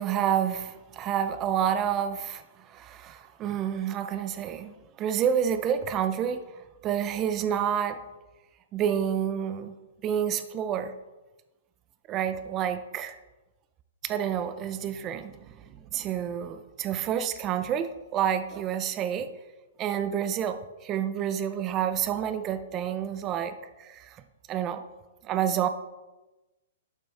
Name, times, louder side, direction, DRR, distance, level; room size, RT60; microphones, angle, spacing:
voice 1, 0.0-8.0 8.7-9.8 10.0-10.9 12.1-13.2 14.0-19.3 19.8-24.2 24.5-24.8 25.2-25.7, right 9 dB, 25° right, 0.5 m, -29 dB
11.0 x 6.0 x 3.5 m
hypercardioid pair, 150°, 0 cm